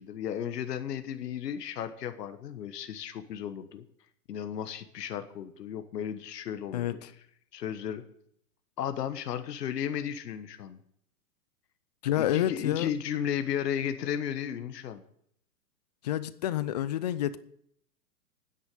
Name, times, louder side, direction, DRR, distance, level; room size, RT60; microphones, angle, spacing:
voice 1, 0.0-3.8 4.3-7.0 7.5-8.0 8.8-10.8 12.2-15.0, left 9 dB, 75° left, 1.3 m, -34 dB
voice 2, 6.7-7.1 12.0-12.9 16.0-17.4, left 12 dB, 30° left, 0.4 m, -29 dB
10.0 x 8.3 x 8.9 m
hypercardioid pair, 130°, 49 cm